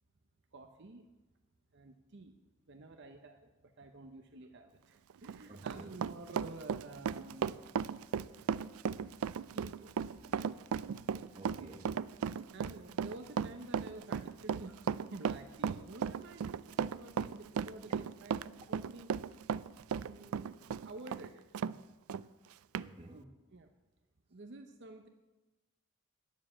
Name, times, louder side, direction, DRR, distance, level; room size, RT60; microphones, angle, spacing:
voice 1, 0.5-1.1 1.7-2.4 2.7-7.6 9.5-10.8 11.1-11.2 12.5-19.1 20.0-20.6 20.8-21.6 23.1-23.7 24.3-25.1, right 2 dB, 55° right, 6 dB, 0.8 m, -50 dB
Run, 5.1-21.8 22.1-22.2 22.7-22.9, right 7 dB, 85° right, 0.3 m, -36 dB
voice 2, 5.5-5.9 8.3-8.4 9.0-9.2 11.3-12.1 19.6-19.7 22.2-22.3 22.8-23.3, right 2 dB, 25° right, 4 dB, 1.2 m, -53 dB
10.5 x 7.4 x 8.5 m, 1.1 s
head